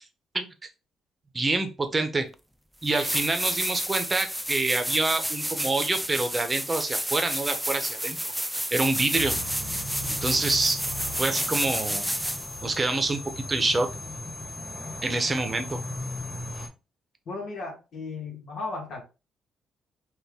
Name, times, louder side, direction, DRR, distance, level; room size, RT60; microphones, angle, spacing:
voice 1, 1.3-2.3 2.8-8.2 8.7-9.3 10.2-10.8 11.2-12.0 12.6-13.9 15.0-15.8, right 2 dB, 25° right, 7 dB, 0.9 m, -26 dB
sound 1, 2.3-2.4 2.8-12.6 15.4-15.5, equal, 5° right, 0.3 m, -30 dB
sound 2, 9.2-16.7, left 1 dB, 15° left, 1.6 m, -37 dB
voice 2, 17.2-19.0, left 3 dB, 70° left, 0 dB, 1.6 m, -35 dB
4.4 x 2.6 x 3.6 m, 0.30 s
cardioid pair, 90°, 0 cm